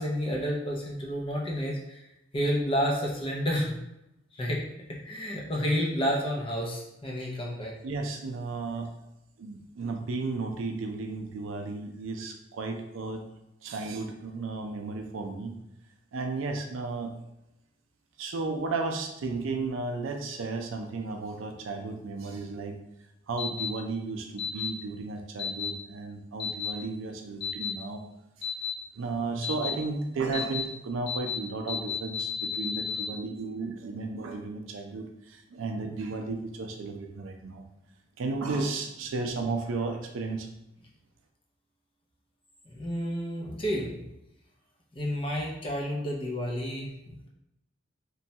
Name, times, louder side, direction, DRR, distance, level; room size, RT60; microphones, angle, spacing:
voice 1, 0.0-2.0 2.3-3.8 4.3-4.6 4.9-7.7 42.7-44.0 45.0-47.3, equal, 25° left, -1 dB, 0.5 m, -30 dB
voice 2, 7.8-8.9 9.4-13.2 13.6-15.6 16.1-17.1 18.2-22.7 23.3-28.0 29.0-37.6 38.2-40.5, right 3 dB, 85° right, 4 dB, 0.4 m, -34 dB
sound 1, 23.4-23.7 24.4-24.7 25.4-25.7 26.4-26.7 27.4-27.7 28.4-28.7 29.4-29.7 30.3-30.6 31.1-31.4 31.7-33.1, left 7 dB, 55° left, 0.9 m, -32 dB
3.0 x 2.2 x 2.7 m, 0.89 s
head